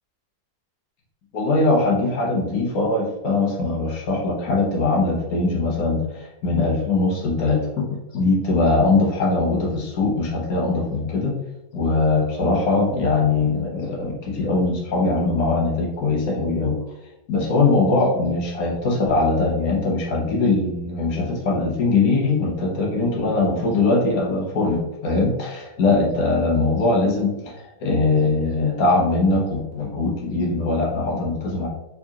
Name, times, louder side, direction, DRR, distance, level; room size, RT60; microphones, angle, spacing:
voice 1, 1.3-7.8 8.1-11.3 11.7-16.8 17.3-31.7, left 3 dB, 75° left, -2 dB, 1.4 m, -21 dB
4.5 x 4.1 x 2.8 m, 0.96 s
omnidirectional pair, 1.5 m